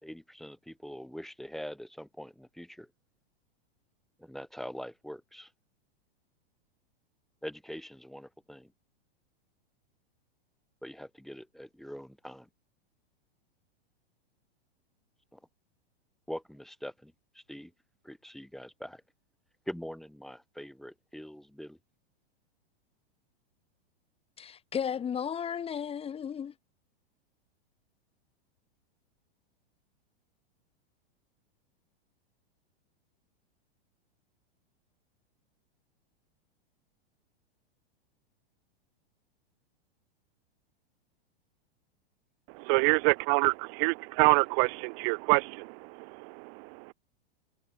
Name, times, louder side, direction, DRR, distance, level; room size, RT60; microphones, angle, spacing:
voice 1, 0.0-2.9 4.2-5.5 7.4-8.7 10.8-12.5 15.3-15.4 16.3-17.7 18.0-19.0 19.7-21.8, equal, ahead, 2.4 m, -43 dB
voice 2, 24.4-26.5, left 8 dB, 20° left, 2.9 m, -34 dB
voice 3, 42.5-46.9, right 40 dB or more, 40° right, 0.7 m, -27 dB
hypercardioid pair, 135°, 31 cm